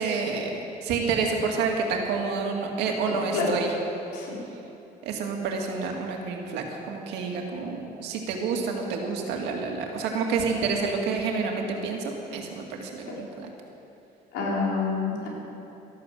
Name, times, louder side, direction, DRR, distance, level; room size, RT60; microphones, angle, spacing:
voice 1, 0.0-3.7 5.0-13.5, right 4 dB, 90° right, 1 dB, 2.2 m, -29 dB
voice 2, 3.0-3.5 4.1-4.4 14.3-15.3, left 4 dB, 85° left, -4 dB, 4.3 m, -28 dB
13.5 x 11.5 x 7.7 m, 2.9 s
cardioid pair, 110°, 17 cm